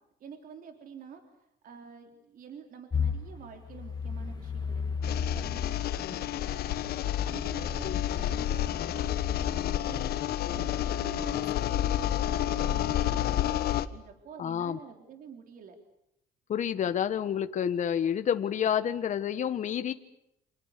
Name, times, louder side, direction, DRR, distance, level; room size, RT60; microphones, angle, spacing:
voice 1, 0.2-1.2 1.6-15.8, right 7 dB, 55° right, 5 dB, 3.6 m, -48 dB
sound 1, 2.9-5.8 6.4-9.6, left 6 dB, 25° left, 2.5 m, -35 dB
sound 2, 5.0-13.9, left 12 dB, 70° left, 1.4 m, -30 dB
voice 2, 14.4-14.8 16.5-19.9, left 9 dB, 45° left, 9 dB, 1.3 m, -29 dB
28.5 x 26.0 x 6.7 m, 0.78 s
cardioid pair, 110°, 17 cm